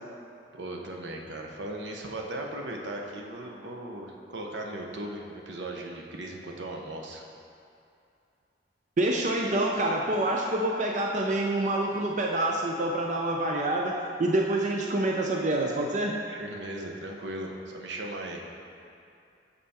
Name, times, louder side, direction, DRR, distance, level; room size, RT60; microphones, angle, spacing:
voice 1, 0.6-7.2 16.3-18.4, right 1 dB, 80° right, 1 dB, 0.8 m, -37 dB
voice 2, 9.0-16.2, right 1 dB, 40° right, 0 dB, 0.4 m, -27 dB
6.6 x 5.5 x 4.2 m, 2.5 s
head